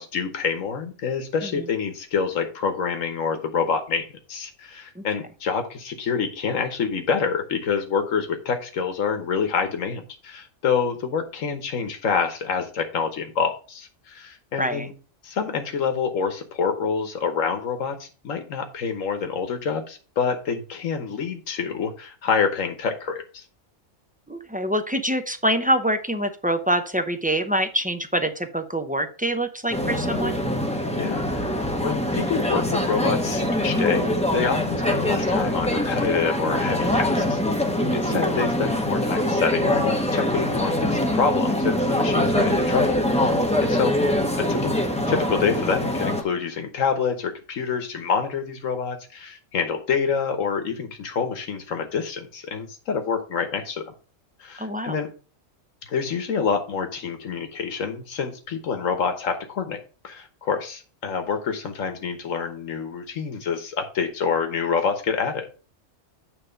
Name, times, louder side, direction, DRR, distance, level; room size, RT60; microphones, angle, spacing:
voice 1, 0.0-14.9 15.2-23.4 31.0-34.1 34.3-37.4 37.9-43.9 44.4-44.7 45.1-53.9 54.4-55.1 55.9-65.5, left 6 dB, 85° left, 6 dB, 1.5 m, -27 dB
voice 2, 24.3-30.4 38.1-38.2 54.6-55.0, right 1 dB, 10° right, 7 dB, 0.5 m, -25 dB
sound 1, 29.7-46.2, left 1 dB, 5° left, 0.9 m, -23 dB
9.2 x 3.2 x 6.5 m, 0.37 s
omnidirectional pair, 1.3 m